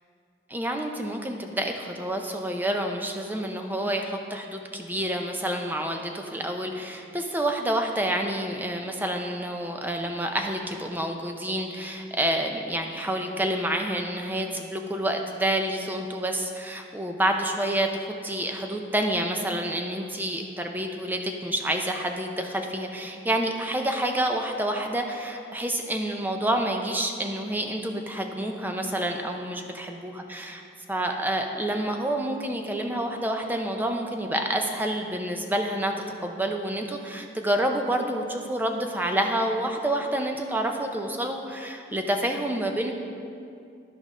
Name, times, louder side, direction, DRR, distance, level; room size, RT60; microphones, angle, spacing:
voice 1, 0.5-30.6 30.9-35.9 36.2-42.9, right 1 dB, 10° right, 3 dB, 0.5 m, -28 dB
13.0 x 5.1 x 3.7 m, 2.5 s
head